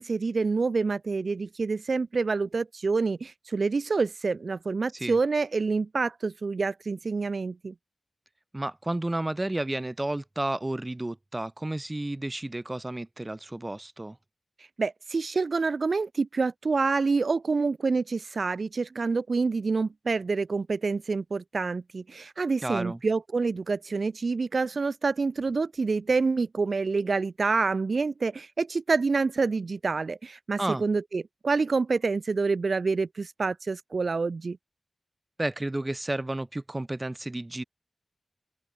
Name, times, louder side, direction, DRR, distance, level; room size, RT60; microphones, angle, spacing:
voice 1, 0.0-7.7 14.6-34.6, right 4 dB, 65° right, 1.5 m, -27 dB
voice 2, 8.5-14.2 22.6-23.0 30.6-30.8 35.4-37.6, right 1 dB, 25° right, 3.2 m, -31 dB
open air
cardioid pair, 50°, 0 cm